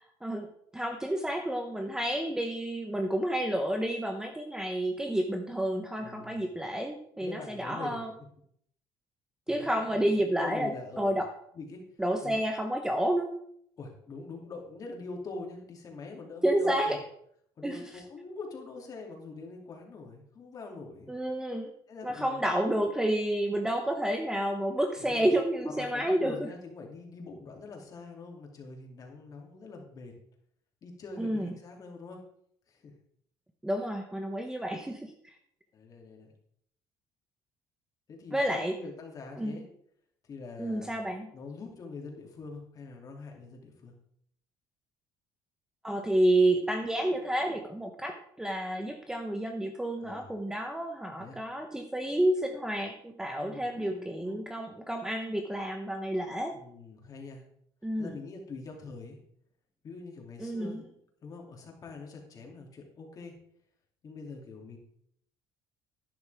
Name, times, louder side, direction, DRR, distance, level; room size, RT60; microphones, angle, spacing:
voice 1, 0.2-8.1 9.5-11.3 12.0-13.3 16.4-17.0 17.6-17.8 21.1-21.7 22.0-26.5 31.2-31.5 33.6-35.1 38.3-38.8 39.4-39.6 40.6-41.3 45.8-56.6 57.8-58.1 60.4-60.8, right 1 dB, 5° right, 5 dB, 0.8 m, -30 dB
voice 2, 6.0-6.4 7.2-8.0 9.5-11.2 11.5-11.8 12.2-12.3 13.8-17.0 17.6-21.1 21.9-22.6 25.0-25.4 25.7-30.1 30.8-32.2 32.7-32.9 35.7-36.3 38.1-39.6 40.3-40.9 41.3-43.9 50.0-50.3 51.2-51.4 53.3-54.5 56.5-57.4 58.0-59.2 59.8-60.8 61.2-63.4 64.0-64.8, left 3 dB, 35° left, 1 dB, 2.7 m, -44 dB
12.0 x 11.0 x 3.5 m, 0.68 s
cardioid pair, 140°, 10 cm